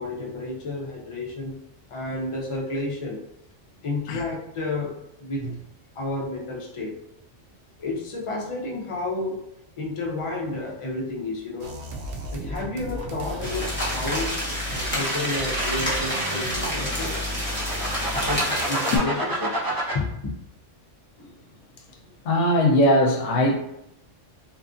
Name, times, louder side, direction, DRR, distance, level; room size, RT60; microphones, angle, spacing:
voice 1, 0.0-1.6 1.9-3.2 3.8-5.5 5.9-7.0 7.8-9.4 9.8-11.8 12.3-14.3 14.7-17.2 18.1-19.6 19.9-20.3, left 2 dB, 45° left, 0.4 m, -31 dB
sound 1, 11.6-18.6, equal, 65° right, 0.8 m, -35 dB
sound 2, 13.4-19.0, equal, 10° left, 0.7 m, -29 dB
sound 3, 14.5-17.0 17.5-19.9, right 1 dB, 35° right, 0.3 m, -29 dB
voice 2, 22.2-23.6, left 1 dB, 85° left, 0.9 m, -20 dB
3.0 x 2.4 x 2.4 m
omnidirectional pair, 1.3 m